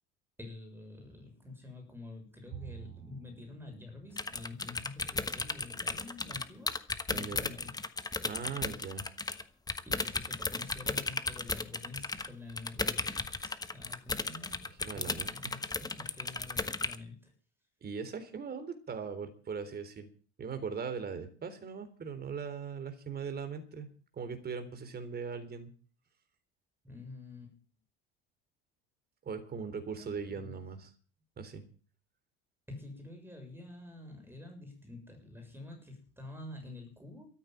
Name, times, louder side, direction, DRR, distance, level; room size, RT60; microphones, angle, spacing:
voice 1, 0.4-6.8 7.1-7.8 9.9-15.7 15.9-17.3 26.8-27.6 29.9-30.6 32.7-37.3, left 2 dB, 5° right, 3 dB, 6.8 m, -48 dB
Bowed string instrument, 2.5-5.9, right 11 dB, 70° right, 5.9 m, -51 dB
sound 1, 4.2-9.4 9.7-17.0, left 3 dB, 15° left, 1.2 m, -35 dB
voice 2, 7.1-7.5 8.2-9.1 14.8-15.3 15.8-16.1 17.8-20.1 20.4-23.9 24.1-25.7 29.3-30.9 31.4-31.6, right 6 dB, 30° right, 9 dB, 3.8 m, -40 dB
13.5 x 9.2 x 9.3 m, 0.41 s
supercardioid pair, 105°, 30 cm